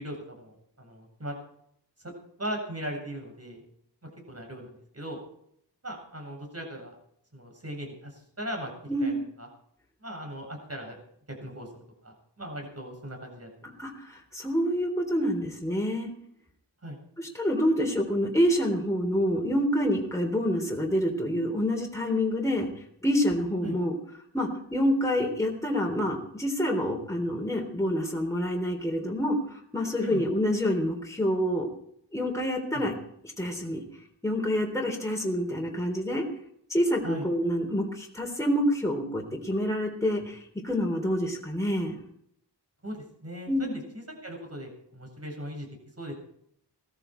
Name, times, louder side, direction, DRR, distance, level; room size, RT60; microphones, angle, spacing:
voice 1, 0.0-1.4 2.0-2.1 2.4-3.6 4.0-5.2 5.8-6.9 7.3-8.7 9.0-9.1 9.4-9.5 10.0-11.0 11.4-11.7 12.0-13.7 16.8-17.0 23.6-23.8 30.0-30.2 32.7-32.9 37.0-37.3 42.8-43.0 43.2-43.5 43.9-45.7 46.0-46.1, right 1 dB, 35° right, 1 dB, 7.6 m, -38 dB
voice 2, 13.8-16.1 17.2-22.7 23.0-23.9 24.3-31.7 32.1-32.9 33.4-33.8 34.2-36.3 36.7-42.0 43.5-43.8, equal, 5° left, 0 dB, 3.6 m, -27 dB
19.0 x 14.0 x 4.6 m, 0.70 s
wide cardioid pair, 80°, 42 cm